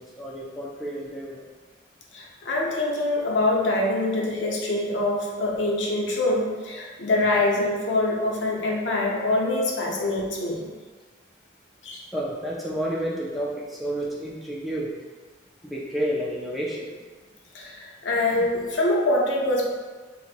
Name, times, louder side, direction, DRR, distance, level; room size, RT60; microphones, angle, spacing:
voice 1, 0.0-1.4 12.1-14.9 15.6-16.9, right 1 dB, ahead, -5 dB, 0.3 m, -30 dB
voice 2, 2.1-10.6 11.8-12.0 17.5-19.7, left 2 dB, 75° left, -2 dB, 0.6 m, -24 dB
4.0 x 2.0 x 2.5 m, 1.3 s
head